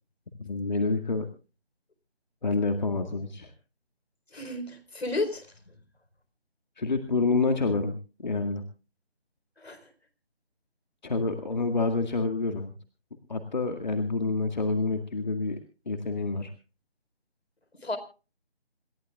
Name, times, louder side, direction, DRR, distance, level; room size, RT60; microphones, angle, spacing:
voice 1, 0.4-1.3 2.4-3.5 6.8-7.9 8.2-8.6 11.0-12.7 13.3-15.6 15.9-16.5, left 3 dB, 45° left, 6 dB, 2.0 m, -27 dB
voice 2, 4.3-5.5 9.6-9.8 17.8-18.0, left 2 dB, 70° left, 11 dB, 4.5 m, -32 dB
28.0 x 14.5 x 2.4 m, 0.35 s
figure-of-eight pair, 165°, 32 cm